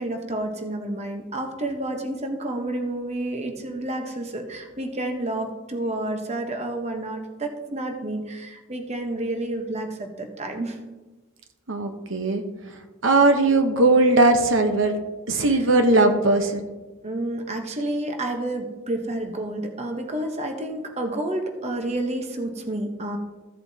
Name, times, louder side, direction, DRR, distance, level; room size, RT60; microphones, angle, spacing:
voice 1, 0.0-10.8 15.5-15.7 17.0-23.2, right 1 dB, 30° right, 4 dB, 1.0 m, -30 dB
voice 2, 11.7-12.4 13.0-14.9 15.3-16.7, right 2 dB, 60° right, 5 dB, 0.9 m, -19 dB
15.0 x 7.7 x 2.8 m, 1.2 s
head